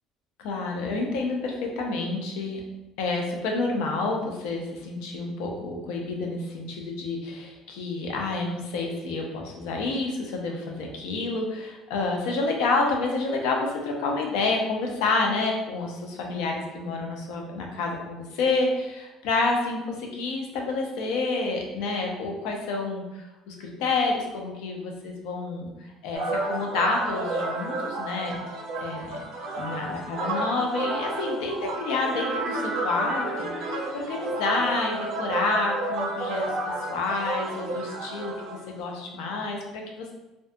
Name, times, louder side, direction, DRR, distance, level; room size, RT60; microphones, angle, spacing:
voice 1, 0.4-2.6 3.0-25.7 26.0-28.4 28.8-29.2 29.6-36.4 36.9-40.1, left 3 dB, 85° left, 1 dB, 0.5 m, -29 dB
sound 1, 26.1-38.6, right 2 dB, 65° right, 0.6 m, -31 dB
2.6 x 2.5 x 2.2 m, 1.0 s
cardioid pair, 160°, 0 cm